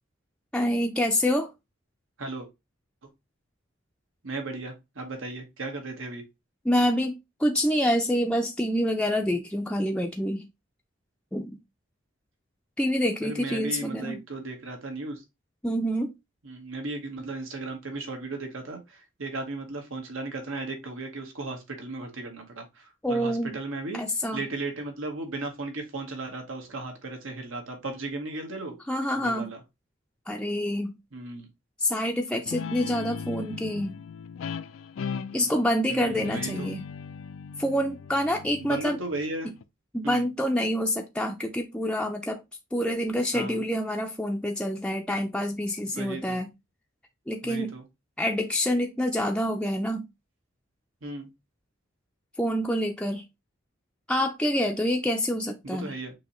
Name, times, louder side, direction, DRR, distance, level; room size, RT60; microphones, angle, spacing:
voice 1, 0.5-1.5 6.6-10.4 11.3-11.6 12.8-14.2 15.6-16.1 23.0-23.6 23.9-24.4 28.9-29.5 30.3-30.9 31.8-34.0 35.3-36.8 37.6-39.0 39.9-42.4 42.7-46.5 47.3-47.7 48.2-50.1 52.4-53.2 54.1-56.0, equal, 5° left, 0.4 m, -27 dB
voice 2, 4.2-6.2 13.2-15.2 16.4-24.0 24.3-28.8 29.2-29.6 31.1-31.5 35.9-36.7 38.6-39.5 40.0-40.2 43.3-43.6 45.9-46.4 47.4-47.8 51.0-51.3 55.6-56.1, right 2 dB, 85° right, 1.3 m, -36 dB
Guitar, 32.5-39.6, left 6 dB, 90° left, 0.4 m, -38 dB
6.2 x 2.8 x 3.0 m
head